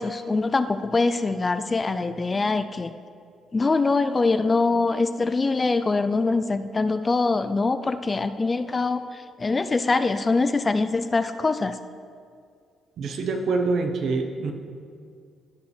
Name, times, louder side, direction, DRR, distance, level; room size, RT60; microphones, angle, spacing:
voice 1, 0.0-2.9 3.5-11.8, left 3 dB, 30° left, 10 dB, 0.3 m, -23 dB
voice 2, 13.0-14.5, right 3 dB, 70° right, 5 dB, 0.9 m, -25 dB
14.5 x 5.2 x 3.3 m, 2.2 s
cardioid pair, 90°, 0 cm